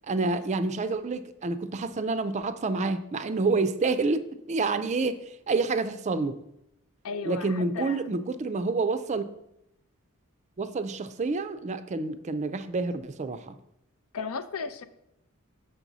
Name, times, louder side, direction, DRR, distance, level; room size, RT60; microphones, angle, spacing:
voice 1, 0.1-6.4 7.3-9.3 10.6-13.6, right 3 dB, 30° right, 11 dB, 0.4 m, -28 dB
voice 2, 7.0-8.2 14.1-14.8, left 5 dB, 75° left, 12 dB, 0.5 m, -35 dB
6.3 x 6.0 x 4.0 m, 0.82 s
head